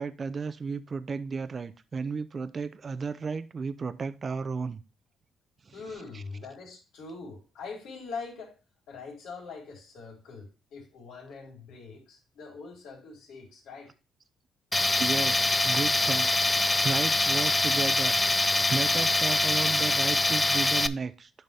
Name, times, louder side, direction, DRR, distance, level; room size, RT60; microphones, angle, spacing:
voice 1, 0.0-4.8 5.7-5.8 6.1-6.2 15.0-16.3 16.5-21.3, right 5 dB, 40° right, 0.6 m, -34 dB
voice 2, 5.7-8.6 8.9-13.9, left 4 dB, 85° left, 3.9 m, -43 dB
Tools, 14.7-20.9, left 2 dB, 15° left, 0.4 m, -24 dB
11.0 x 4.0 x 3.4 m
cardioid pair, 90°, 0 cm